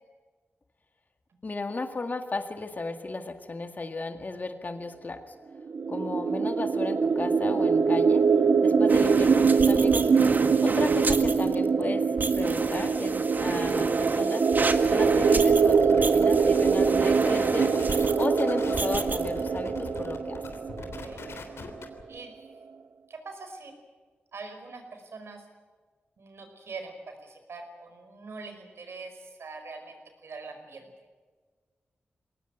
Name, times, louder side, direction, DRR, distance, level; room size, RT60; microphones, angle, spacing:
voice 1, 1.4-5.3 5.9-8.2 8.6-10.1 10.6-12.0 12.4-14.4 14.9-17.7 18.2-20.4, left 3 dB, 45° left, 6 dB, 2.0 m, -34 dB
sound 1, 5.7-21.4, right 5 dB, 60° right, 0.7 m, -23 dB
sound 2, 8.9-18.4 18.7-19.4 19.8-20.0, right 3 dB, 45° right, 1.8 m, -33 dB
sound 3, 14.5-22.0, left 4 dB, 85° left, 3.4 m, -41 dB
voice 2, 23.1-23.7 24.3-25.4 26.2-30.9, right 3 dB, 80° right, 6 dB, 5.0 m, -43 dB
22.5 x 18.5 x 9.1 m, 1.5 s
cardioid pair, 70°, 4 cm